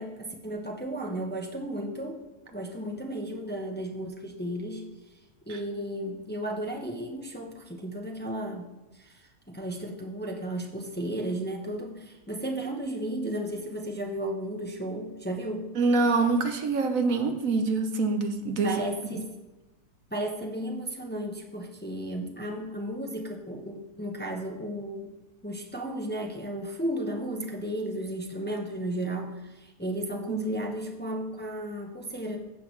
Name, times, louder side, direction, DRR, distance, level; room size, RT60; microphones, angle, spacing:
voice 1, 0.0-2.2 2.5-4.9 5.5-8.7 8.9-15.7 18.6-19.4 20.1-25.1 25.4-32.4, right 1 dB, 10° left, 1 dB, 0.6 m, -34 dB
voice 2, 15.8-18.7 30.3-30.4, right 3 dB, 60° right, 6 dB, 1.1 m, -25 dB
15.0 x 5.9 x 3.3 m, 1.1 s
omnidirectional pair, 1.8 m